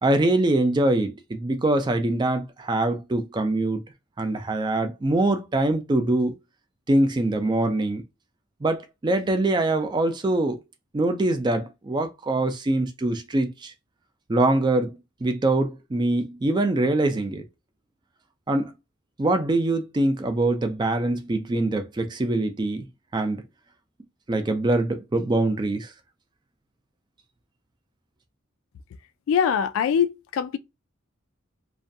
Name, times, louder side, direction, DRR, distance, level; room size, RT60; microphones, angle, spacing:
voice 1, 0.0-3.8 4.2-6.3 6.9-8.0 8.6-10.6 10.9-13.7 14.3-14.9 15.2-17.4 18.5-18.7 19.2-22.8 23.1-23.4 24.3-25.9, right 2 dB, 20° right, 0.4 m, -23 dB
voice 2, 29.3-30.6, left 7 dB, 90° left, 0.3 m, -23 dB
2.4 x 2.1 x 2.6 m
head